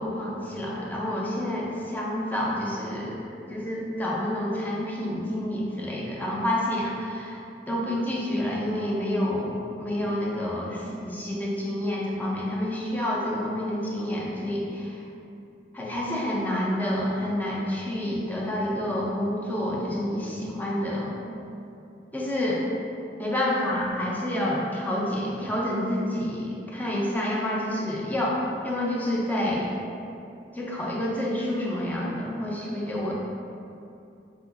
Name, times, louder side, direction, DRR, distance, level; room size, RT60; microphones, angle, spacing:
voice 1, 0.0-7.4 7.7-15.0 15.7-21.2 22.1-22.6 23.2-29.7 30.5-33.1, left 1 dB, 10° left, -5 dB, 0.4 m, -28 dB
3.8 x 2.5 x 2.4 m, 2.6 s
head